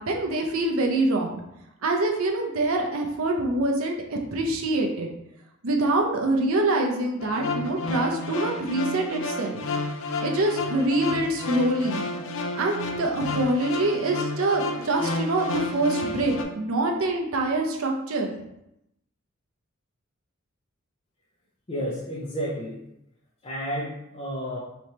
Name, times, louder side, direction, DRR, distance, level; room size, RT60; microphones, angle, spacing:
voice 1, 0.0-1.4 1.8-5.1 5.6-9.6 10.2-12.0 12.5-18.3, right 2 dB, 85° right, 2 dB, 0.7 m, -25 dB
sound 1, 7.2-16.4, left 2 dB, 70° left, 0.5 m, -31 dB
voice 2, 21.7-22.8 23.4-24.6, equal, 25° left, -6 dB, 0.7 m, -31 dB
3.4 x 3.0 x 4.2 m, 0.82 s
head